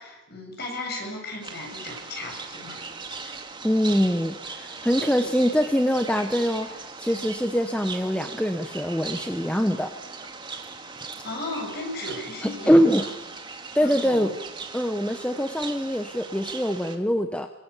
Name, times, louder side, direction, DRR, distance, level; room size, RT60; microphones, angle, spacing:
voice 1, 0.0-2.8 3.2-3.4 11.2-13.1 13.7-14.3, left 2 dB, 50° left, 2 dB, 7.8 m, -36 dB
sound 1, 1.4-17.0, right 4 dB, 20° right, 2.2 m, -39 dB
voice 2, 3.6-9.9 12.4-13.1 13.7-14.3 14.7-17.5, equal, 5° left, 6 dB, 1.0 m, -23 dB
27.0 x 23.0 x 8.4 m, 1.0 s
head